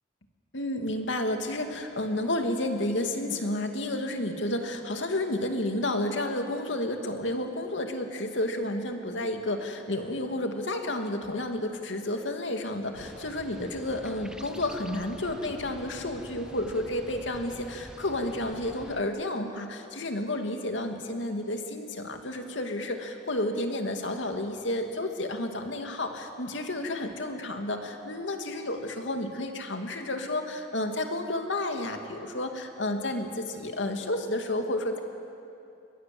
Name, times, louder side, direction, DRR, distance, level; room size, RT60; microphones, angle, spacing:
voice 1, 0.5-35.0, left 1 dB, 80° left, 4 dB, 2.4 m, -31 dB
sound 1, 12.9-19.0, equal, 5° right, 0.8 m, -46 dB
28.0 x 23.0 x 7.8 m, 2.7 s
head